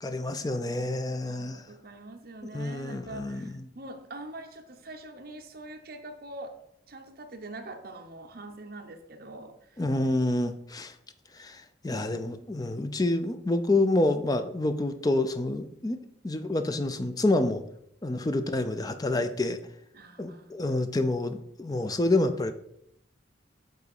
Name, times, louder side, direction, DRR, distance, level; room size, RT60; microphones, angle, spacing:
voice 1, 0.0-1.6 2.5-3.5 9.8-10.9 11.4-16.0 16.2-17.6 18.0-19.6 20.2-22.5, left 2 dB, 20° left, 9 dB, 0.5 m, -28 dB
voice 2, 1.3-6.5 6.9-9.8 11.9-12.4 18.1-18.4 19.9-20.8, right 2 dB, 55° right, 4 dB, 0.9 m, -44 dB
7.2 x 3.9 x 4.9 m, 0.75 s
head